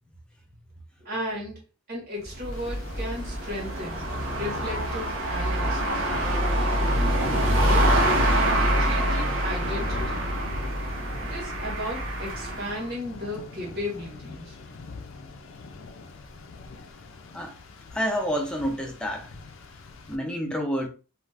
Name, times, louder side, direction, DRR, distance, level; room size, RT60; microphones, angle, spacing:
voice 1, 1.0-1.6 1.9-4.0 4.3-6.0 7.6-10.3 11.2-14.6, left 1 dB, 50° right, 1.2 m, -35 dB
sound 1, 2.2-12.9, right 1 dB, 80° right, 0.7 m, -25 dB
Rain, 2.5-20.2, left 3 dB, 70° left, 0.5 m, -44 dB
voice 2, 17.9-19.3 20.1-20.9, equal, 5° left, 0.5 m, -28 dB
2.5 x 2.4 x 3.2 m
head